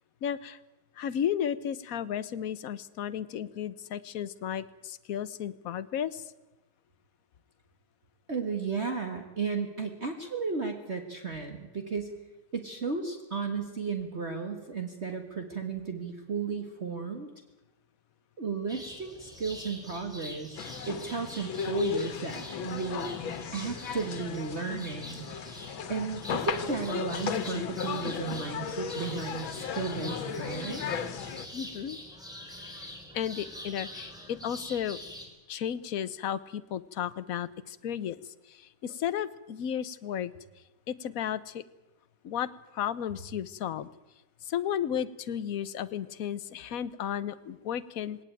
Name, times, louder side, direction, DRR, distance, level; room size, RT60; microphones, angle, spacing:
voice 1, 0.2-0.6 1.0-6.2 31.5-32.0 32.6-35.0 35.5-38.2 38.5-40.3 40.9-41.6 42.2-43.9 44.5-48.2, left 9 dB, 55° left, 14 dB, 1.1 m, -34 dB
voice 2, 8.3-12.1 12.5-17.3 18.4-23.1 23.5-25.3 25.9-30.9, right 5 dB, 35° right, 4 dB, 1.8 m, -34 dB
sound 1, 18.7-35.3, equal, ahead, 4.2 m, -45 dB
sound 2, 20.6-31.5, left 7 dB, 80° left, 2.0 m, -35 dB
20.0 x 18.0 x 9.1 m, 1.0 s
omnidirectional pair, 2.1 m